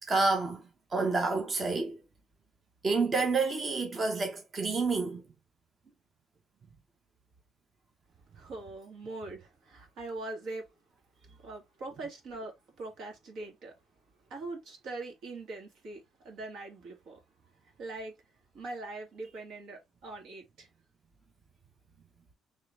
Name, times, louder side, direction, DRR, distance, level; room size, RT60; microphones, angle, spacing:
voice 1, 0.0-2.0 2.8-5.2, right 3 dB, 30° right, 0.8 m, -29 dB
voice 2, 8.3-10.7 11.4-13.7 14.3-17.2 17.8-18.2 18.5-20.7, right 2 dB, 80° right, 2.0 m, -42 dB
3.8 x 3.2 x 3.1 m
cardioid pair, 140°, 0 cm